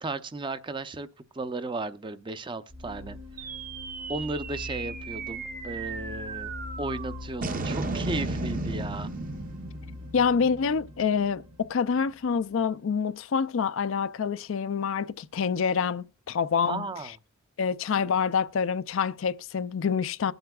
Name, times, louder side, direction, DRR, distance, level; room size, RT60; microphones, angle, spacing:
voice 1, 0.0-1.1 1.3-3.5 4.1-6.5 6.8-9.1 16.7-17.1, right 3 dB, 25° right, 0.6 m, -35 dB
sound 1, 2.7-12.5, left 2 dB, 80° right, 3.4 m, -42 dB
sound 2, 3.4-12.0, right 3 dB, 40° right, 0.9 m, -36 dB
voice 2, 10.1-16.8 17.6-20.3, left 6 dB, 65° left, 0.4 m, -27 dB
20.5 x 7.9 x 2.3 m
head